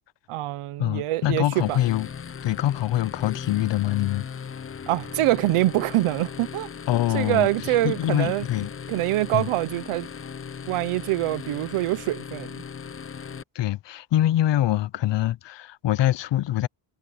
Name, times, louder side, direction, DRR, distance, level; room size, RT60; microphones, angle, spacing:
voice 1, 0.3-1.8 4.9-6.7 7.1-8.5 8.9-10.1 10.7-12.6, right 16 dB, 85° right, 1.0 m, -25 dB
voice 2, 0.8-2.1 2.4-4.2 6.9-7.5 7.8-8.7 9.3-9.5 13.5-16.7, left 13 dB, 60° left, 0.8 m, -24 dB
sound 1, 1.5-13.4, left 6 dB, 25° left, 0.7 m, -38 dB
cardioid pair, 95°, 49 cm